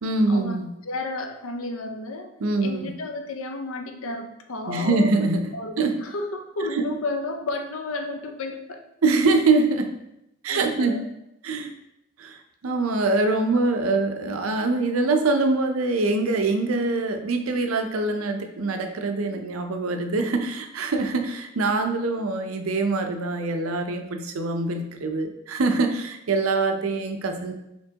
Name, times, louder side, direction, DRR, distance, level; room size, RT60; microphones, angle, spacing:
voice 1, 0.0-0.7 2.4-3.0 4.7-5.4 5.8-6.0 9.0-9.9 10.4-11.1 11.4-11.7 12.2-12.4 12.6-27.5, right 3 dB, 90° right, 6 dB, 0.5 m, -24 dB
voice 2, 0.8-2.3 2.6-5.1 5.5-8.8 10.5-11.0, left 2 dB, 85° left, 5 dB, 0.6 m, -32 dB
4.4 x 3.5 x 2.8 m, 0.84 s
head